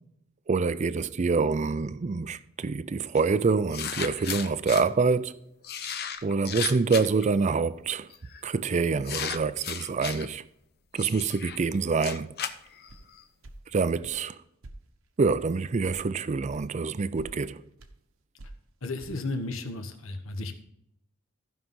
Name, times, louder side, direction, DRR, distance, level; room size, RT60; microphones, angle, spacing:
voice 1, 0.5-5.4 6.2-8.1 8.4-10.4 10.9-12.3 13.7-14.4 15.2-17.6, right 4 dB, 35° right, 0.4 m, -26 dB
sound 1, 3.1-3.2 3.7-4.8 5.6-7.3 8.1-8.4 9.0-10.3 11.0-13.2, left 8 dB, 50° left, 0.7 m, -35 dB
sound 2, 12.9-13.1 13.4-13.6 14.0-14.2 14.6-14.8 15.2-15.4 15.9-16.0 16.5-16.7 17.0-17.3 17.8-17.9 18.4-18.6 19.0-19.1, right 2 dB, 70° right, 1.0 m, -46 dB
voice 2, 18.8-20.5, left 2 dB, 70° left, 1.2 m, -33 dB
15.0 x 5.5 x 3.7 m
head